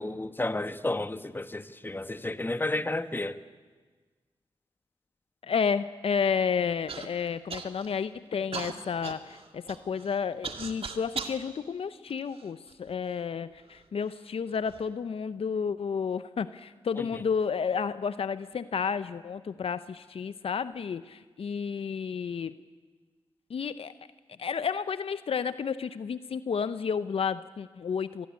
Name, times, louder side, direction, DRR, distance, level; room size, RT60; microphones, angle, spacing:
voice 1, 0.0-3.4 17.0-17.1, left 2 dB, 20° left, 11 dB, 1.4 m, -32 dB
voice 2, 5.4-22.5 23.5-23.9 24.4-28.3, left 6 dB, 70° left, 13 dB, 0.8 m, -31 dB
Human voice / Cough, 6.9-7.1 7.5-8.0 8.5-11.4 12.1-12.9 13.7-13.8 14.5-14.8, right 5 dB, 70° right, 2.0 m, -39 dB
25.5 x 19.0 x 9.6 m, 1.4 s
cardioid pair, 50°, 10 cm